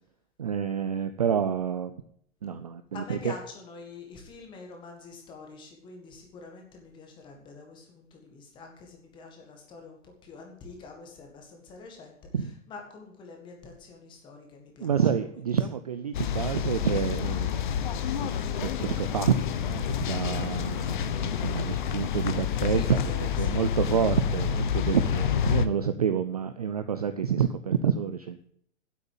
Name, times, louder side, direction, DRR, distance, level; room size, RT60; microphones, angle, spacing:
voice 1, 0.4-2.0 2.4-3.4 12.3-12.5 14.8-17.5 18.2-18.3 18.6-28.5, right 7 dB, 35° right, 10 dB, 0.4 m, -28 dB
voice 2, 2.9-12.2 12.7-14.9 15.3-15.4 22.7-23.7 25.3-25.4, left 4 dB, 15° left, 2 dB, 1.8 m, -46 dB
sound 1, 16.1-25.7, left 8 dB, 40° left, 0.8 m, -28 dB
9.2 x 8.1 x 9.1 m, 0.65 s
hypercardioid pair, 175°, 36 cm